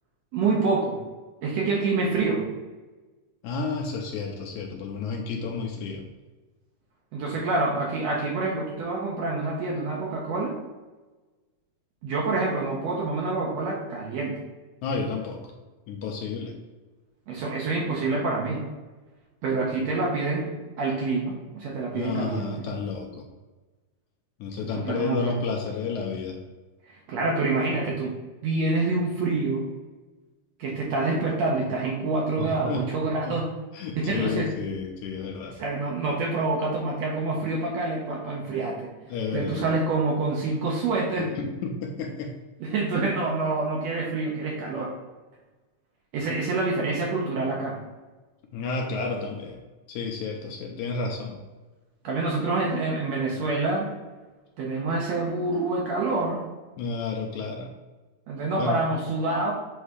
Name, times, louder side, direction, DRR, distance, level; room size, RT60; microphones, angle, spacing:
voice 1, 0.3-1.0 1.4-2.4 7.1-10.5 12.0-14.4 17.3-18.6 19.4-22.7 24.6-25.4 27.1-28.1 28.4-29.6 30.6-33.5 33.9-34.5 35.5-38.9 39.3-41.3 42.6-44.9 46.1-47.8 52.0-53.9 54.6-56.4 58.3-59.5, right 3 dB, 70° right, -2 dB, 1.8 m, -27 dB
voice 2, 3.4-6.0 14.8-15.4 15.9-16.5 21.9-23.1 24.4-26.4 32.4-32.9 33.2-33.4 33.7-35.6 39.1-39.8 41.2-42.3 48.5-49.6 49.9-51.4 56.8-57.7 58.6-58.8, left 4 dB, 75° left, 1 dB, 1.9 m, -31 dB
8.0 x 2.8 x 4.8 m, 1.2 s
omnidirectional pair, 3.8 m